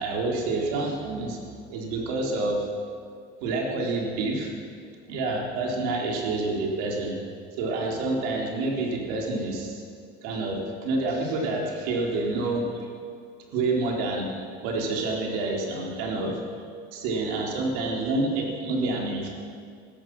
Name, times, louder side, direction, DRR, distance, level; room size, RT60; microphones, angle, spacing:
voice 1, 0.0-1.4 1.7-2.7 3.4-4.5 5.1-7.2 7.6-9.8 10.2-12.9 13.5-16.4 16.9-19.3, right 2 dB, 85° right, -1 dB, 3.8 m, -28 dB
16.5 x 14.0 x 6.2 m, 2.2 s
cardioid pair, 150°, 20 cm